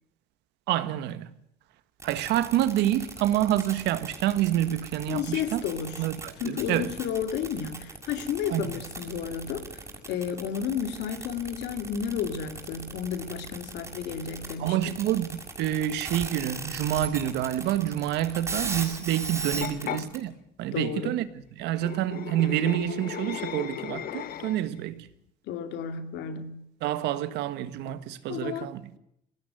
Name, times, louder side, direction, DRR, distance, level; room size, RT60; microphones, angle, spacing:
voice 1, 0.7-1.3 2.0-5.6 6.0-6.9 8.5-8.6 14.6-15.3 15.6-20.3 20.6-21.3 21.6-25.1 26.8-28.9, right 12 dB, 85° right, 1.5 m, -27 dB
sound 1, 2.0-20.2, right 3 dB, 15° right, 6.5 m, -37 dB
voice 2, 5.1-15.1 19.5-20.1 20.7-21.2 25.5-26.6 28.3-29.0, left 7 dB, 90° left, 2.4 m, -32 dB
sound 2, 19.6-20.0 21.7-24.8, left 10 dB, 60° left, 1.4 m, -36 dB
20.5 x 18.0 x 7.8 m
cardioid pair, 110°, 17 cm